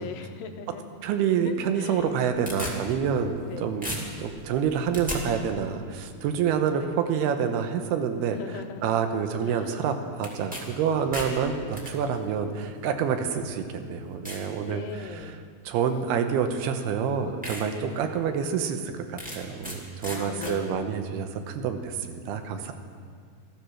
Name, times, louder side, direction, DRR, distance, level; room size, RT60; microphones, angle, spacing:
voice 1, 0.0-0.8 1.5-2.1 3.5-3.7 6.7-7.0 8.4-9.0 9.4-9.8 11.6-11.8 14.7-15.4 20.1-20.8, left 6 dB, 90° left, 5 dB, 3.1 m, -40 dB
voice 2, 1.0-3.9 4.2-8.4 8.8-15.4 15.7-18.8 19.1-22.7, right 7 dB, 85° right, 7 dB, 2.9 m, -27 dB
sound 1, 2.0-3.5 3.8-5.2 10.2-10.6 10.9-11.9 12.8-12.9 13.5-13.6 14.2-14.5 15.0-15.3 16.5-16.6 17.0-17.1 17.4-17.6 18.1-18.2 19.2-19.8 20.0-20.5, equal, 5° right, 1.2 m, -36 dB
15.0 x 13.5 x 6.2 m, 2.1 s
omnidirectional pair, 4.6 m